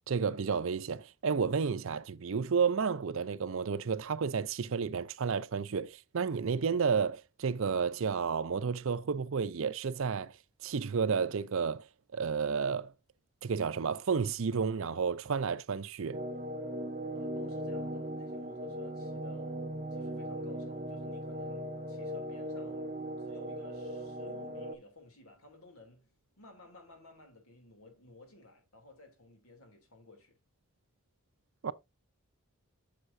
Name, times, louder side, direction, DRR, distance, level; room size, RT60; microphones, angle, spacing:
voice 1, 0.1-10.3 10.6-11.9 12.1-12.9 13.4-16.2 31.6-31.7, right 5 dB, 65° right, 0.5 m, -31 dB
sound 1, 16.1-24.8, right 1 dB, 35° right, 0.7 m, -38 dB
voice 2, 17.1-30.4, left 2 dB, 80° left, 2.9 m, -55 dB
8.0 x 6.6 x 2.6 m
head